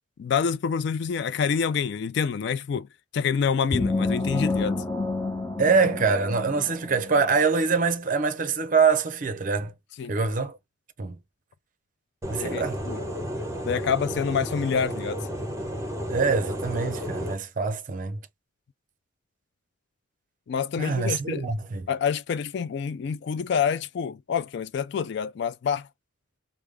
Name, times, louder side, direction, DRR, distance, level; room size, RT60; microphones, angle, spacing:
voice 1, 0.2-2.9 3.1-4.8 10.0-10.2 12.4-13.0 13.6-15.2 20.5-21.5 21.9-25.9, left 6 dB, 60° left, 0.3 m, -27 dB
sound 1, 3.7-7.3, left 3 dB, 15° left, 0.6 m, -28 dB
voice 2, 5.6-9.7 10.1-10.6 11.0-11.2 12.3-12.8 16.1-18.2 20.8-21.9, right 5 dB, 40° right, 0.6 m, -24 dB
sound 2, 12.2-17.3, equal, 15° right, 0.9 m, -32 dB
3.5 x 2.0 x 3.2 m
head